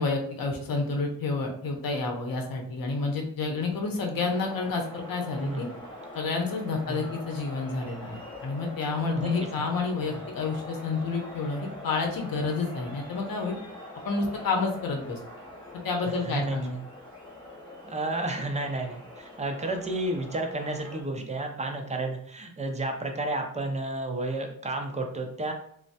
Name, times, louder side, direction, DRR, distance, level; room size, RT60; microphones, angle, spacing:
voice 1, 0.0-5.7 6.1-13.6 14.0-15.2 15.8-16.8, left 3 dB, 75° left, 2 dB, 0.7 m, -29 dB
sound 1, 4.2-21.0, left 1 dB, 15° left, 1.0 m, -43 dB
voice 2, 5.4-5.8 6.9-7.1 9.2-9.6 10.1-10.2 16.0-16.8 17.9-25.5, right 2 dB, 20° right, 4 dB, 0.4 m, -32 dB
3.1 x 2.0 x 2.7 m, 0.67 s
wide cardioid pair, 120°, 35 cm